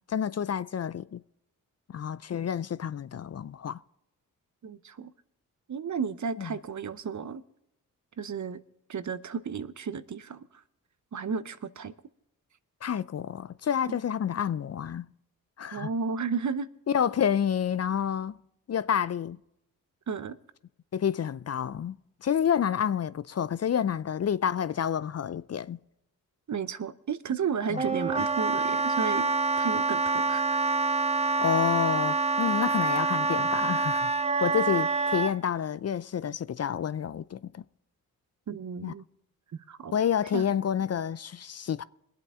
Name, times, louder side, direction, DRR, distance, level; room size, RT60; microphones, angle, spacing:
voice 1, 0.1-1.2 1.9-3.8 6.4-6.5 12.8-15.1 15.6-15.9 16.9-18.4 18.7-19.4 20.9-25.8 27.7-27.8 31.4-34.1 34.4-37.6 38.8-38.9 39.9-41.8, left 8 dB, 45° left, 0.5 m, -29 dB
voice 2, 4.6-5.1 5.7-7.4 8.2-8.6 8.9-10.4 11.1-11.9 13.9-14.0 15.7-16.7 20.1-20.4 26.5-29.3 29.6-30.6 38.5-39.0 39.5-39.9 40.3-40.4, right 6 dB, 50° right, 0.9 m, -33 dB
Wind instrument woodwind instrument, 27.8-35.3, right 3 dB, 15° right, 0.8 m, -26 dB
22.0 x 8.3 x 3.7 m
supercardioid pair, 40°, 37 cm